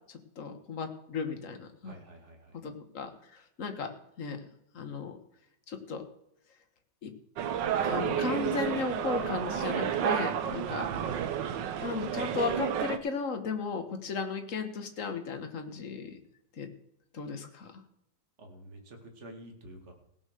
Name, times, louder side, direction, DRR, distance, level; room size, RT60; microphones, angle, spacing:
voice 1, 0.1-1.9 2.6-3.9 4.2-4.5 4.7-5.2 5.7-6.0 7.0-7.1 7.8-10.9 11.8-16.2 16.6-16.7 17.1-17.7, left 4 dB, 45° left, 6 dB, 1.7 m, -35 dB
voice 2, 1.8-2.7 10.4-11.0 18.4-19.9, right 1 dB, 35° right, 2 dB, 2.4 m, -50 dB
sound 1, 7.4-13.0, right 9 dB, 70° right, 1.5 m, -31 dB
17.0 x 6.7 x 6.6 m, 0.80 s
omnidirectional pair, 2.1 m